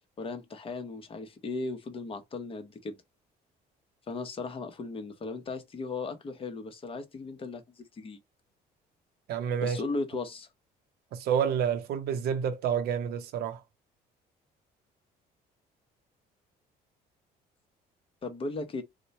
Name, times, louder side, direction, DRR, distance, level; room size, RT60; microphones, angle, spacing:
voice 1, 0.2-3.0 4.1-8.2 9.6-10.5 18.2-18.8, left 3 dB, 30° left, 0.8 m, -36 dB
voice 2, 9.3-9.8 11.1-13.6, right 8 dB, 70° right, 0.6 m, -29 dB
3.0 x 2.1 x 4.0 m
cardioid pair, 110°, 17 cm